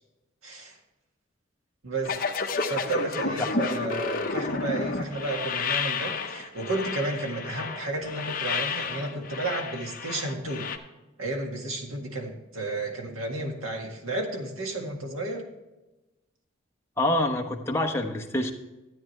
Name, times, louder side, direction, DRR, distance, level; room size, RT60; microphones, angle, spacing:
voice 1, 0.4-0.8 1.8-10.7 11.2-15.5, right 2 dB, 85° right, 2 dB, 1.9 m, -32 dB
sound 1, 2.0-10.8, left 4 dB, 40° left, 0.8 m, -31 dB
voice 2, 17.0-18.5, left 1 dB, 10° left, 3 dB, 0.9 m, -27 dB
13.5 x 8.9 x 3.2 m, 1.0 s
head